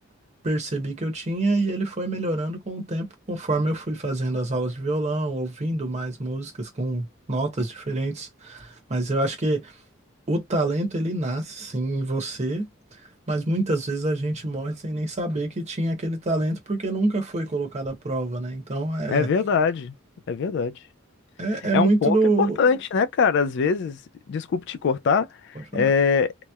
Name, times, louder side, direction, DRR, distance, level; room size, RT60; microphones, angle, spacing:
voice 1, 0.4-9.8 10.3-13.0 13.3-19.3 21.4-22.6 25.6-25.9, right 2 dB, 35° right, 0.9 m, -26 dB
voice 2, 19.1-19.9 20.3-20.7 21.7-24.0 24.3-26.5, left 5 dB, 60° left, 0.3 m, -23 dB
2.9 x 2.0 x 2.2 m
head